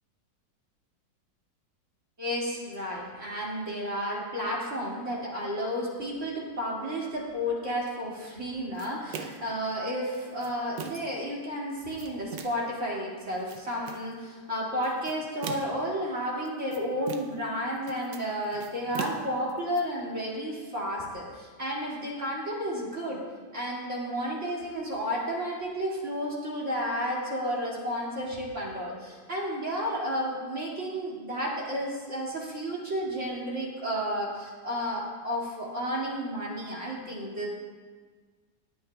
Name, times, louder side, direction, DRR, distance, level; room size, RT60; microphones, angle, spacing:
voice 1, 2.2-23.2 23.5-37.5, equal, 45° right, -5 dB, 2.7 m, -32 dB
sound 1, 8.8-9.5 10.1-11.2 11.7-12.7 13.3-14.1 14.8-15.9 16.5-17.5 17.8-19.8, right 6 dB, 90° right, 1.4 m, -40 dB
19.0 x 9.6 x 2.3 m, 1.5 s
omnidirectional pair, 1.9 m